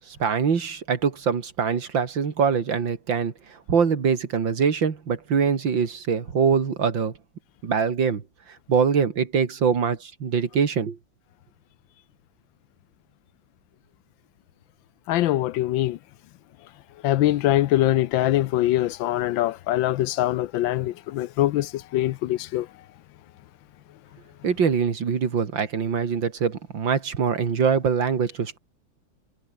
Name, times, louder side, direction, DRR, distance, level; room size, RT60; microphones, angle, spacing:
voice 1, 0.1-7.1 7.6-8.2 8.7-11.0 24.4-28.6, right 6 dB, 70° right, 3.0 m, -23 dB
voice 2, 15.1-16.0 17.0-22.7, left 14 dB, 80° left, 1.4 m, -23 dB
omnidirectional pair, 2.1 m